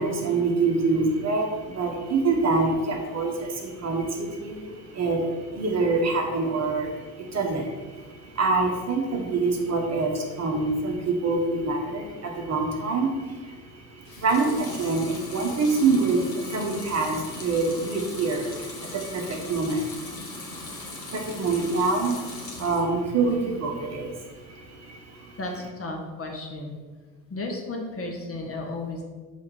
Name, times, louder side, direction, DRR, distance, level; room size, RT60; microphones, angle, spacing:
voice 1, 0.0-7.9 8.2-13.5 13.9-25.3, right 3 dB, 30° right, 1 dB, 1.3 m, -26 dB
Water tap faucet / Sink (filling or washing) / Liquid, 14.0-22.9 23.3-24.0, left 2 dB, 80° left, 1.6 m, -39 dB
voice 2, 25.4-26.7 27.3-29.0, left 2 dB, 25° left, 1 dB, 1.6 m, -34 dB
6.3 x 4.2 x 6.3 m, 1.4 s
figure-of-eight pair, 60°, 49 cm